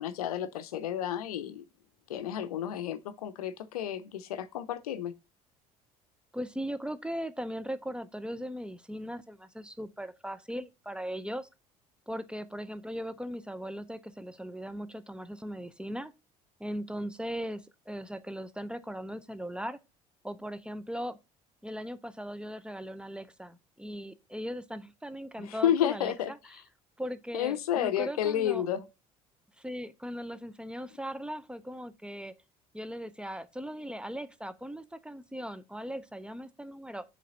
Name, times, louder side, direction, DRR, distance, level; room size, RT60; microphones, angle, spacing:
voice 1, 0.0-1.6 2.1-5.1 25.4-26.3 27.3-28.8, left 10 dB, 80° left, 0.5 m, -31 dB
voice 2, 6.3-11.5 12.1-16.1 16.6-19.8 20.2-21.2 21.6-26.6 27.0-28.7 29.6-32.3 32.7-37.0, equal, 5° right, 0.6 m, -39 dB
7.5 x 3.3 x 3.9 m
hypercardioid pair, 60°, 19 cm